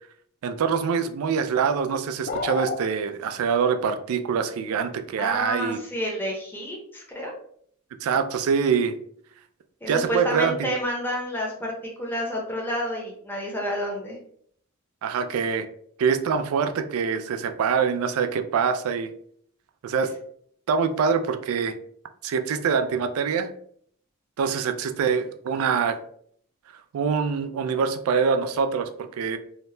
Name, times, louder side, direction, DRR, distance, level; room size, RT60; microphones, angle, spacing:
voice 1, 0.4-5.8 8.0-9.0 9.9-10.7 15.0-15.7 16.0-19.1 19.8-20.1 20.7-21.8 22.2-23.5 24.4-26.0 26.9-29.4, right 6 dB, 85° right, 8 dB, 0.3 m, -24 dB
sound 1, 2.3-2.8, left 4 dB, 45° left, 0.3 m, -29 dB
voice 2, 5.2-7.3 9.8-11.7 12.0-14.2, equal, 10° left, -2 dB, 0.6 m, -29 dB
2.7 x 2.1 x 3.0 m, 0.63 s
head